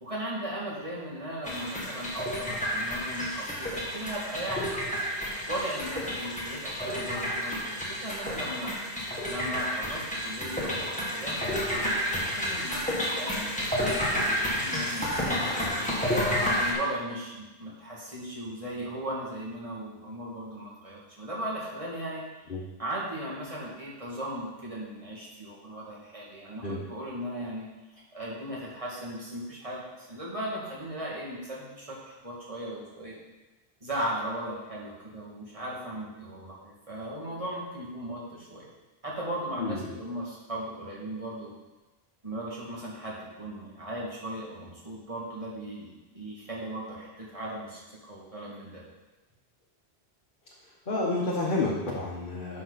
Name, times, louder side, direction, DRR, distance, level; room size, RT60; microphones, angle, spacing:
voice 1, 0.0-4.8 5.5-8.7 9.3-15.1 16.0-22.2 22.8-27.7 28.1-33.1 33.8-38.7 39.0-41.5 42.2-48.8, right 1 dB, 30° right, -6 dB, 2.4 m, -37 dB
sound 1, 1.4-16.7, equal, 5° left, 1.9 m, -30 dB
voice 2, 39.6-40.0 50.9-52.6, left 2 dB, 50° left, -4 dB, 1.3 m, -30 dB
11.0 x 6.1 x 4.1 m, 1.1 s
omnidirectional pair, 1.1 m